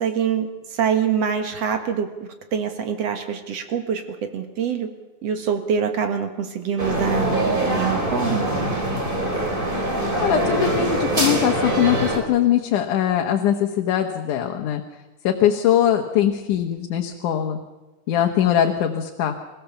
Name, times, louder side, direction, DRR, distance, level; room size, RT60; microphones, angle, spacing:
voice 1, 0.0-2.1 2.5-4.0 4.3-4.9 5.2-8.5, right 7 dB, 60° right, 7 dB, 2.5 m, -25 dB
sound 1, 6.8-12.2, right 1 dB, 15° right, 3.3 m, -23 dB
voice 2, 10.2-14.8 15.2-17.6 18.1-19.3, left 10 dB, 85° left, 3 dB, 2.7 m, -21 dB
26.5 x 16.0 x 7.1 m, 1.1 s
omnidirectional pair, 3.5 m